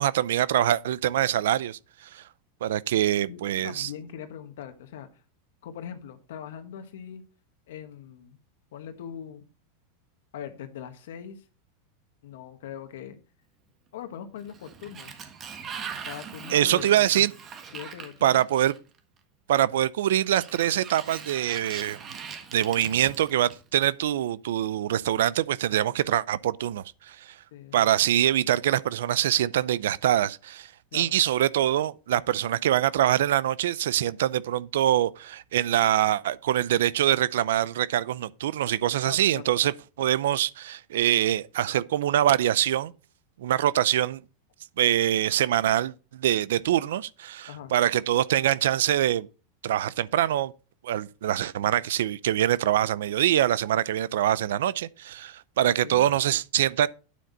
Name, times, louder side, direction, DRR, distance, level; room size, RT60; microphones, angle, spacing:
voice 1, 0.0-2.2 2.6-3.9 16.5-17.3 18.2-18.7 19.5-22.0 22.5-27.3 27.7-39.7 40.0-42.9 43.4-44.2 44.8-49.3 49.6-50.5 50.8-56.9, right 12 dB, 85° right, 0.5 m, -24 dB
voice 2, 3.3-5.2 5.6-7.2 7.7-8.4 8.7-9.4 10.3-11.4 12.2-13.2 13.9-15.2 16.0-16.9 17.7-18.4 22.2-22.3 27.5-28.1 30.9-31.1 39.0-39.5 47.5-47.7 55.6-56.0, left 9 dB, 80° left, 1.5 m, -41 dB
Sliding door, 14.4-19.0 20.1-23.8, right 6 dB, 25° right, 1.5 m, -41 dB
9.4 x 7.9 x 4.0 m
supercardioid pair, 155°, 0 cm